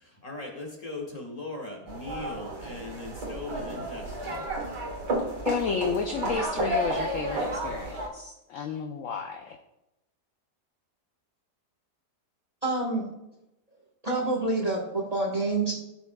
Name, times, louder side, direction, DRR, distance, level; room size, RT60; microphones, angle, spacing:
voice 1, 0.0-4.5, left 2 dB, 25° left, 0 dB, 1.7 m, -39 dB
sound 1, 1.9-8.1, right 1 dB, 85° right, 2.3 m, -32 dB
voice 2, 5.4-9.6, left 5 dB, 65° left, 5 dB, 0.8 m, -31 dB
voice 3, 12.6-13.1 14.0-15.7, right 3 dB, 25° right, 0 dB, 1.1 m, -27 dB
15.0 x 6.1 x 2.2 m, 0.91 s
omnidirectional pair, 1.8 m